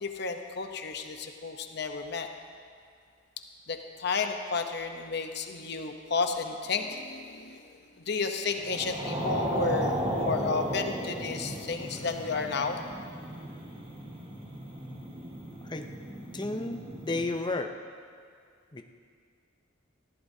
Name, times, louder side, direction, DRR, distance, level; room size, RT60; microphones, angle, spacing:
voice 1, 0.0-2.3 3.7-12.8, left 4 dB, 60° left, 5 dB, 0.8 m, -32 dB
sound 1, 8.6-17.3, right 1 dB, 30° right, 1.5 m, -35 dB
voice 2, 16.3-17.7 18.7-18.8, left 2 dB, 25° left, 5 dB, 0.7 m, -32 dB
19.5 x 14.5 x 2.8 m, 2.2 s
head